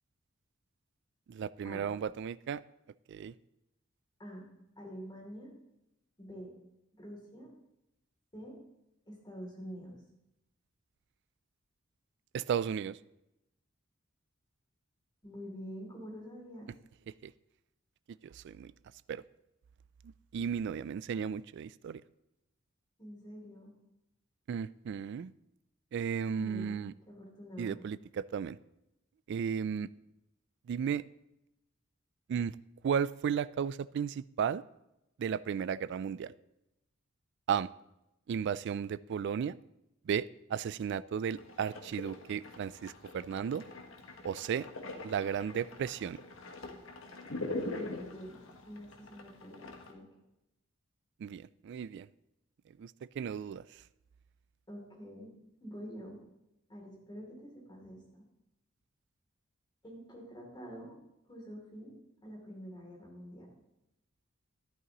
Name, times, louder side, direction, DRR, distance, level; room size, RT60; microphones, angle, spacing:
voice 1, 1.3-2.6 3.1-3.3 12.3-13.0 17.1-17.3 18.1-18.7 19.1-19.2 20.3-22.0 24.5-25.3 25.9-26.9 27.6-28.6 29.3-29.9 30.7-31.1 32.3-32.6 32.8-34.6 35.2-36.3 37.5-37.7 38.3-39.6 40.1-43.6 44.2-44.7 45.0-46.2 51.2-52.1 52.8-53.8, right 7 dB, 60° right, 18 dB, 0.3 m, -34 dB
voice 2, 4.8-5.5 6.2-6.5 7.0-7.5 8.3-8.6 9.1-10.0 15.2-16.7 23.0-23.7 26.4-26.8 27.1-27.8 47.7-50.0 54.7-55.3 55.6-56.2 56.7-58.2 59.8-61.0 61.3-62.0 62.2-63.6, equal, 20° left, -2 dB, 2.9 m, -47 dB
sound 1, 41.3-49.9, left 2 dB, 70° left, 1.3 m, -43 dB
12.5 x 11.0 x 3.0 m, 0.89 s
head